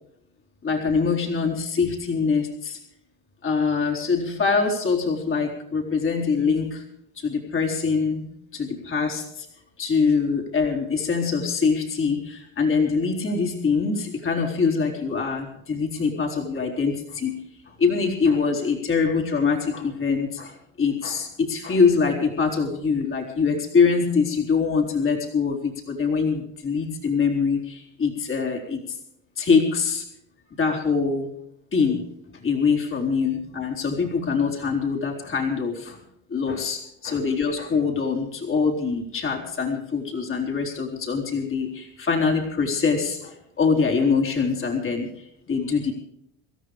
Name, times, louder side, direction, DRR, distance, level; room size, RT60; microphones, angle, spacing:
voice 1, 0.6-2.8 3.4-6.8 7.2-8.3 8.5-9.5 9.8-17.3 17.7-29.0 29.4-30.0 30.6-31.3 31.7-32.0 32.3-36.0 36.3-45.9, left 5 dB, 35° left, 1 dB, 4.1 m, -24 dB
26.5 x 13.5 x 3.4 m, 0.76 s
supercardioid pair, 110°, 37 cm